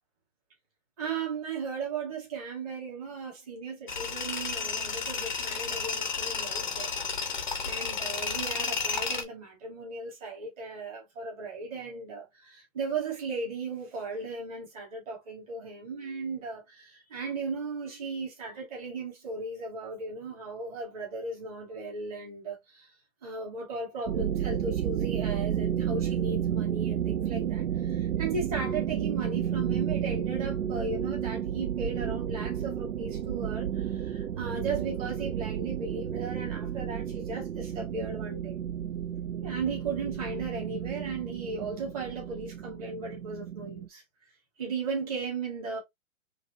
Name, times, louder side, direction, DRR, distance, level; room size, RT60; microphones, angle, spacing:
voice 1, 1.0-6.9 7.6-22.9 23.2-38.6 39.4-44.0 44.6-45.8, right 4 dB, 25° right, 2.0 m, -36 dB
Tools, 3.9-9.2, left 5 dB, 35° left, 0.6 m, -32 dB
sound 1, 24.1-43.9, right 9 dB, 85° right, 0.7 m, -32 dB
4.8 x 2.9 x 2.8 m
hypercardioid pair, 175°, 42 cm